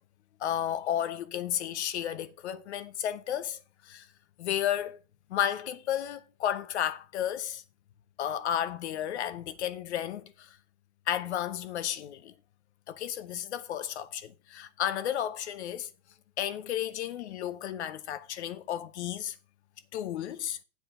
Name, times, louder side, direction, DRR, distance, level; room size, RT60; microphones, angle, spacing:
voice 1, 0.4-4.1 4.4-5.0 5.3-7.6 8.2-10.5 11.1-12.3 12.9-15.9 16.4-19.3 19.9-20.6, left 10 dB, 65° left, 1.0 m, -33 dB
8.1 x 4.6 x 6.4 m
supercardioid pair, 175°, 36 cm